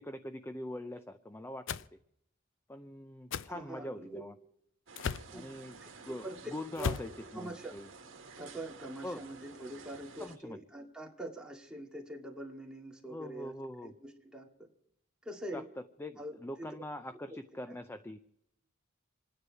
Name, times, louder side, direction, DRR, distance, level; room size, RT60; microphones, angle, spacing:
voice 1, 0.0-2.0 2.7-4.3 5.3-5.8 6.0-7.9 9.0-9.2 10.2-10.6 13.1-13.9 15.5-15.6 16.0-18.2, left 1 dB, 10° left, 10 dB, 0.5 m, -43 dB
sound 1, 1.7-1.9 3.3-3.5 5.0-5.3 6.8-7.1, left 6 dB, 65° left, 0.5 m, -35 dB
voice 2, 3.5-4.2 5.3-5.5 5.8-6.4 6.8-7.8 8.4-13.5 13.8-14.7 15.2-15.7 16.2-16.7 17.3-17.4 17.7-17.8, right 1 dB, 5° right, -1 dB, 2.2 m, -44 dB
sound 2, 4.9-10.4, right 4 dB, 70° right, 1.7 m, -52 dB
27.5 x 9.8 x 4.8 m, 0.76 s
head